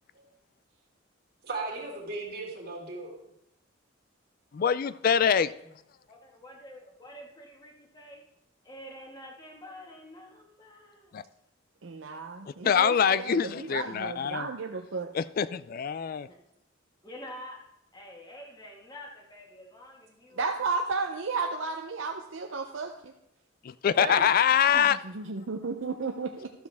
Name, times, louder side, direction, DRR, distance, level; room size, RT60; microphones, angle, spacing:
voice 1, 1.4-3.2 24.0-24.3, right 3 dB, 50° right, -1 dB, 2.2 m, -36 dB
voice 2, 4.5-5.5 11.1-11.2 12.6-14.5 15.1-16.3 23.6-25.0, left 7 dB, 50° left, 17 dB, 0.3 m, -24 dB
voice 3, 6.1-8.2 8.6-11.3 16.3-16.4 17.0-17.6 17.9-20.5 24.1-24.3, equal, 20° left, 0 dB, 1.6 m, -47 dB
voice 4, 11.8-15.1 20.4-23.1 24.7-26.5, right 4 dB, 75° right, 3 dB, 0.6 m, -33 dB
12.5 x 7.2 x 3.5 m, 0.80 s
head